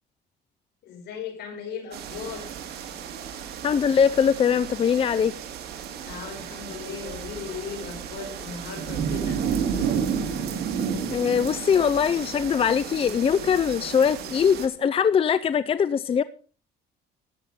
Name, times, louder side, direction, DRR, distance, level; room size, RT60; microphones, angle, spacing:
voice 1, 0.8-2.5 6.0-9.4, left 6 dB, 75° left, 4 dB, 5.1 m, -37 dB
sound 1, 1.9-14.7, right 7 dB, 70° right, 2.9 m, -32 dB
voice 2, 3.6-5.3 11.1-16.2, left 7 dB, 35° left, 15 dB, 0.5 m, -22 dB
13.5 x 9.1 x 5.4 m, 0.39 s
cardioid pair, 110°, 17 cm